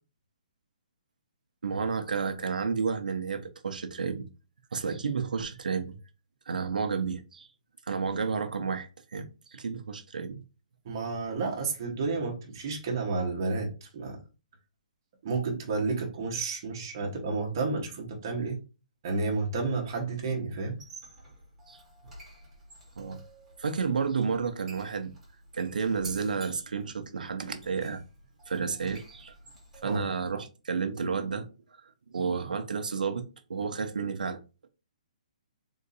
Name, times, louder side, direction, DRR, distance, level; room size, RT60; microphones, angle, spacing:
voice 1, 1.6-4.3 4.7-6.0 6.5-7.5 7.9-10.4 21.7-21.8 23.0-23.2 23.6-25.1 25.5-28.0 28.5-29.4 29.8-31.8 32.1-33.2 33.5-34.4, right 5 dB, 85° right, 0.7 m, -31 dB
voice 2, 10.8-14.2 15.2-18.6 19.0-20.8 29.8-30.0, right 3 dB, 25° right, 1.1 m, -31 dB
Squeak, 20.7-30.3, right 2 dB, 5° right, 1.3 m, -50 dB
3.8 x 2.7 x 4.0 m
hypercardioid pair, 180°, 4 cm